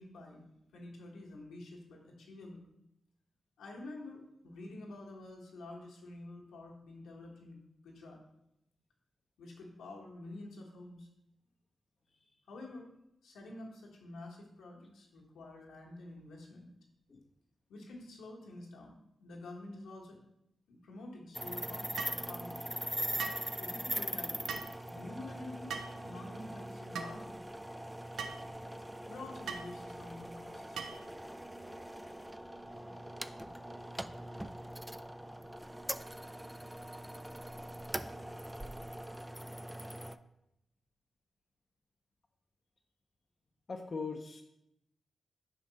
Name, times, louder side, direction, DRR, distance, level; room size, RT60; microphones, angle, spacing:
voice 1, 0.0-2.6 3.6-8.2 9.4-11.1 12.5-12.9 13.2-16.7 17.7-20.2 20.7-22.7 23.6-24.5 24.9-25.7 26.0-27.4 29.1-30.8, left 2 dB, 85° left, -1 dB, 1.2 m, -48 dB
voice 2, 12.1-12.4 17.1-17.3 43.7-44.4, left 4 dB, 50° left, 3 dB, 0.6 m, -41 dB
sound 1, 21.3-40.2, right 1 dB, 10° right, 0.4 m, -42 dB
sound 2, 22.0-22.2 23.2-23.5 24.5-24.7 25.7-26.0 26.9-27.1 28.2-28.4 29.5-29.7 30.8-31.1, right 5 dB, 80° right, 0.5 m, -40 dB
5.3 x 4.9 x 4.0 m, 0.82 s
supercardioid pair, 45°, 0 cm